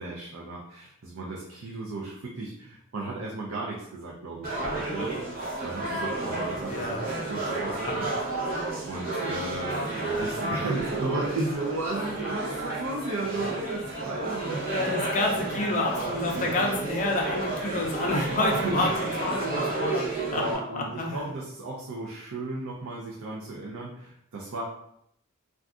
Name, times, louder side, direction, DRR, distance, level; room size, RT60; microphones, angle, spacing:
voice 1, 0.0-5.1 5.6-8.1 8.8-14.8 15.4-15.6 16.3-16.5 18.2-18.4 18.6-18.8 20.3-24.6, right 2 dB, 70° right, -3 dB, 0.5 m, -35 dB
sound 1, 4.4-20.5, right 2 dB, 40° right, 0.8 m, -31 dB
voice 2, 6.7-7.1 7.8-7.9 14.7-20.1 20.3-20.4 21.0-21.2, left 2 dB, 35° left, -1 dB, 0.4 m, -28 dB
2.5 x 2.3 x 3.6 m, 0.74 s
head